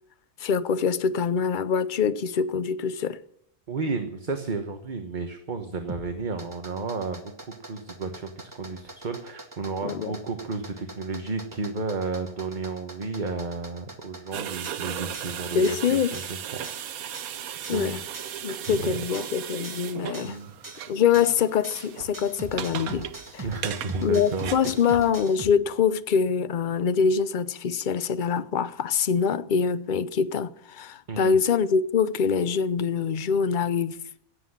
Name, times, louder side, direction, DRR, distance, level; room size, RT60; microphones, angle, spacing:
voice 1, 0.4-3.2 9.8-10.2 15.5-16.1 17.7-18.0 18.4-20.4 20.9-23.4 24.0-34.0, left 6 dB, 50° left, 0.6 m, -24 dB
voice 2, 3.7-7.3 7.7-16.4 16.8-16.9 17.7-18.0 18.5-19.0 20.2-20.5 23.4-24.5 31.1-31.3, right 4 dB, 35° right, 1.2 m, -32 dB
sound 1, 5.9-25.5, right 2 dB, 15° right, 1.1 m, -43 dB
sound 2, 14.3-25.1, right 10 dB, 70° right, 1.2 m, -37 dB
16.5 x 7.9 x 9.7 m
omnidirectional pair, 1.6 m